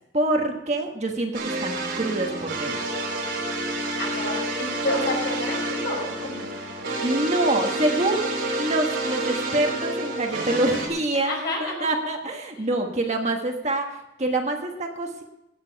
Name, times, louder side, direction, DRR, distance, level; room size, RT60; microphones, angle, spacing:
voice 1, 0.1-2.8 7.0-8.3 8.6-15.2, right 2 dB, 35° right, 3 dB, 1.5 m, -26 dB
sound 1, 1.3-10.9, right 2 dB, 80° right, 3.4 m, -29 dB
voice 2, 4.0-6.4 11.2-11.9 12.6-12.7, left 1 dB, 55° left, 0 dB, 5.1 m, -30 dB
16.5 x 8.7 x 4.7 m, 0.90 s
head